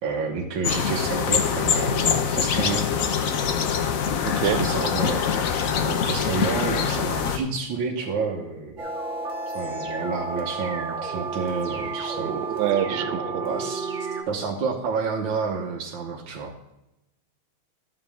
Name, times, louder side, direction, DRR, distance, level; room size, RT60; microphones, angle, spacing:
voice 1, 0.0-2.9 4.4-8.8 9.5-12.3 12.9-13.9 14.3-16.5, right 5 dB, 65° right, -1 dB, 1.7 m, -30 dB
sound 1, 0.6-7.4, left 7 dB, 75° left, 0.7 m, -24 dB
voice 2, 4.2-4.6 12.2-13.4, right 10 dB, 90° right, 11 dB, 1.6 m, -26 dB
sound 2, 8.8-14.2, right 3 dB, 40° right, 1.6 m, -31 dB
12.0 x 7.5 x 3.5 m, 0.91 s
omnidirectional pair, 2.4 m